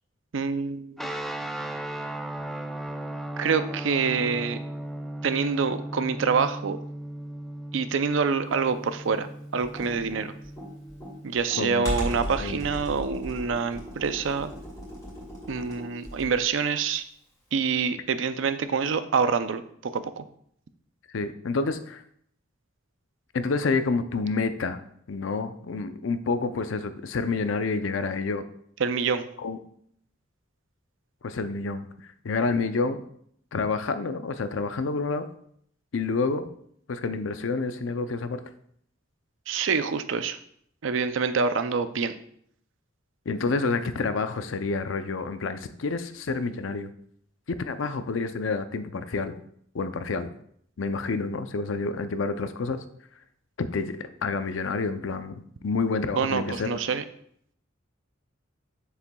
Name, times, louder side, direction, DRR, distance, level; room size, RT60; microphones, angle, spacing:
voice 1, 0.3-1.1 3.4-4.6 5.2-6.8 7.7-10.3 11.2-14.5 15.5-17.0 17.5-20.2 28.8-29.3 39.5-40.4 40.8-42.2 56.2-57.0, right 5 dB, 70° right, 11 dB, 0.5 m, -26 dB
sound 1, 1.0-11.3, right 1 dB, ahead, 0.4 m, -36 dB
Computer keyboard, 9.6-16.5, equal, 20° left, 2.2 m, -37 dB
voice 2, 12.1-12.6 21.1-22.0 23.3-24.8 25.1-28.4 29.4-29.6 31.2-31.9 32.2-33.0 33.5-35.3 35.9-36.5 36.9-38.4 43.3-46.9 47.6-49.3 49.7-50.3 50.8-52.8 53.6-56.8, left 4 dB, 75° left, 10 dB, 0.5 m, -28 dB
7.2 x 6.7 x 2.3 m, 0.67 s
head